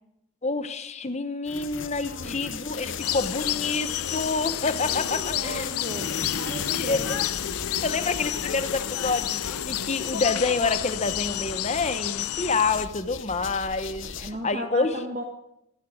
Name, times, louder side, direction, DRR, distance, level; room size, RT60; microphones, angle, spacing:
voice 1, 0.4-5.7 6.8-7.2 7.8-15.0, left 3 dB, 30° left, 11 dB, 0.8 m, -28 dB
sound 1, 1.5-14.3, left 5 dB, 55° left, 1.0 m, -36 dB
voice 2, 2.0-2.4 4.9-7.2 14.2-15.2, right 1 dB, 35° right, 4 dB, 1.3 m, -36 dB
sound 2, 3.0-12.9, left 12 dB, 85° left, 0.5 m, -31 dB
15.0 x 13.5 x 6.4 m, 0.80 s
head